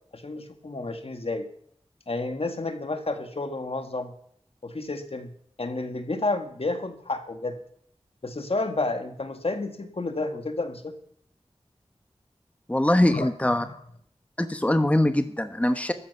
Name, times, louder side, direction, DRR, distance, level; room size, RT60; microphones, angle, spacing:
voice 1, 0.1-1.5 2.1-4.1 4.6-5.3 5.6-7.6 8.2-10.9 13.1-13.3 13.6-13.8, left 2 dB, 65° left, 7 dB, 1.8 m, -30 dB
voice 2, 12.7-13.6 14.4-15.9, left 1 dB, 10° left, 9 dB, 1.2 m, -22 dB
14.0 x 13.5 x 5.7 m, 0.67 s
wide cardioid pair, 50°, 11 cm